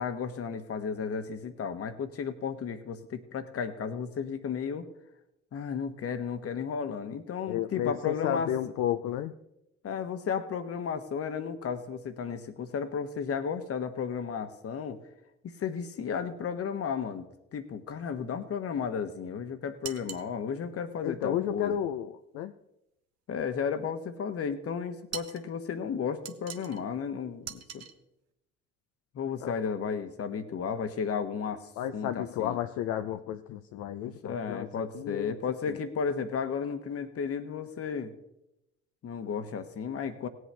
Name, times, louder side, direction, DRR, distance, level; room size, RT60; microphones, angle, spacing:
voice 1, 0.0-4.9 5.5-8.5 9.8-15.0 15.6-21.8 23.3-27.9 29.1-32.6 34.0-38.1 39.0-40.3, left 6 dB, 50° left, 10 dB, 1.2 m, -33 dB
voice 2, 7.5-9.3 21.0-22.5 29.4-29.5 31.8-35.4 35.7-35.8, left 11 dB, 70° left, 8 dB, 0.6 m, -32 dB
sound 1, 19.8-20.3 25.1-25.5 26.3-26.8 27.4-27.9, right 9 dB, 60° right, 1.0 m, -41 dB
18.0 x 7.9 x 3.4 m, 0.88 s
hypercardioid pair, 55°, 29 cm